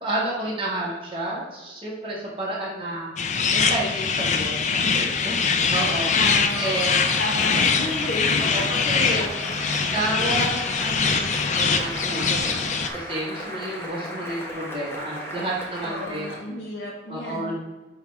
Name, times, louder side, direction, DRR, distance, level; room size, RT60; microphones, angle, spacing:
voice 1, 0.0-3.1 3.5-6.1 6.6-6.9 8.4-9.3 9.9-12.7 12.9-16.3 17.1-17.5, right 1 dB, 30° right, -5 dB, 1.7 m, -30 dB
sound 1, 3.2-12.9, left 5 dB, 40° left, 0.5 m, -23 dB
voice 2, 6.1-8.6 15.9-17.5, left 1 dB, 80° left, -2 dB, 1.0 m, -32 dB
Cheering / Applause, 6.4-16.5, equal, 15° left, 1.1 m, -36 dB
9.7 x 3.5 x 3.3 m, 1.2 s
head